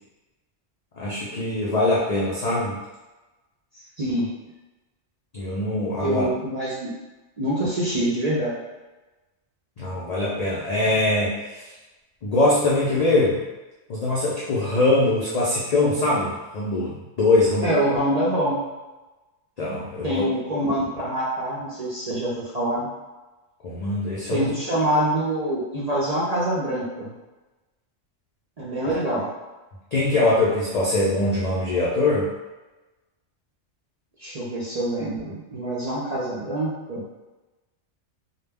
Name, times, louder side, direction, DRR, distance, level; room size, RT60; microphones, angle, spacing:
voice 1, 1.0-2.8 5.3-6.3 9.8-11.7 12.2-13.4 13.9-17.7 19.6-20.2 23.6-24.5 29.9-32.3, left 2 dB, 80° left, -6 dB, 0.3 m, -22 dB
voice 2, 4.0-4.3 6.0-6.9 7.4-8.6 17.6-18.6 20.0-22.9 24.3-27.1 28.6-29.3 34.2-37.0, right 1 dB, 55° right, -8 dB, 0.4 m, -25 dB
2.2 x 2.1 x 3.4 m, 1.1 s
omnidirectional pair, 1.3 m